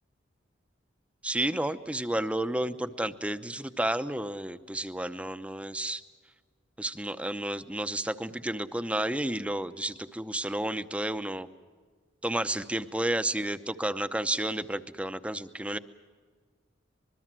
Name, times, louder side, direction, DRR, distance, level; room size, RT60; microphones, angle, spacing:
voice 1, 1.2-6.0 6.8-11.5 12.2-15.8, right 1 dB, 5° right, 11 dB, 0.7 m, -31 dB
25.0 x 22.0 x 7.5 m, 1.6 s
head